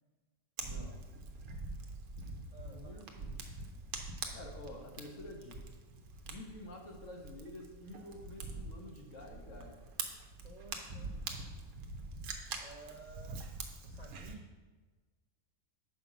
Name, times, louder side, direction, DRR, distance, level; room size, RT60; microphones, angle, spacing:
voice 1, 0.6-1.0 2.7-3.3 4.3-5.7 6.2-9.8, left 1 dB, 65° left, 1 dB, 1.4 m, -49 dB
Fire, 0.6-14.3, right 4 dB, 90° right, 1.3 m, -44 dB
voice 2, 2.5-3.0 10.4-11.2 12.6-13.5 13.8-14.5, right 4 dB, 40° right, -2 dB, 0.6 m, -53 dB
5.5 x 5.0 x 6.0 m, 1.3 s
omnidirectional pair, 1.5 m